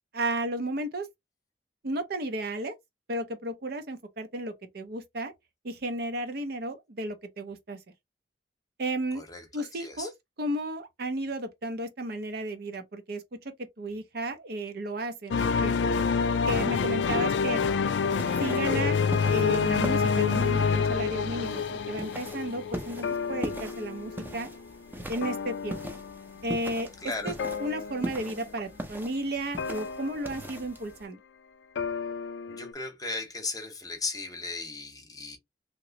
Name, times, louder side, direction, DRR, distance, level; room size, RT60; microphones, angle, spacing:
voice 1, 0.1-1.1 1.8-2.7 3.1-5.3 5.6-7.8 8.8-9.2 9.5-10.1 10.4-13.4 13.8-15.8 16.5-17.6 18.4-19.0 19.3-24.5 25.1-25.8 26.4-26.9 27.2-27.3 27.6-31.2, right 1 dB, 60° right, 0.6 m, -33 dB
voice 2, 9.1-10.1 27.0-27.4 32.5-35.4, left 3 dB, 20° left, 0.9 m, -36 dB
sound 1, 15.3-24.7 25.0-26.4 27.4-28.4 29.6-30.3 31.8-32.7, left 5 dB, 80° left, 0.4 m, -28 dB
sound 2, 18.0-31.1, right 1 dB, 10° right, 0.6 m, -41 dB
3.0 x 2.9 x 2.8 m
head